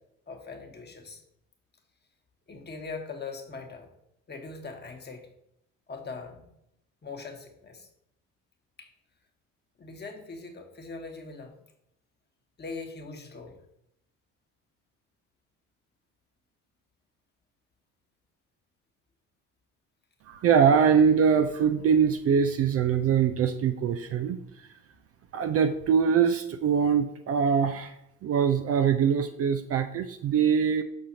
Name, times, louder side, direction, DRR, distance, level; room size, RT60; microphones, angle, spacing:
voice 1, 0.3-1.2 2.5-3.9 4.3-5.3 5.9-6.5 7.0-7.9 8.8-8.9 9.8-11.6 12.6-13.5, left 4 dB, 25° left, 4 dB, 1.3 m, -41 dB
voice 2, 20.3-24.4 25.3-27.9 28.2-30.8, right 7 dB, 40° right, 8 dB, 0.5 m, -23 dB
6.4 x 6.1 x 2.8 m, 0.79 s
hypercardioid pair, 55°, 39 cm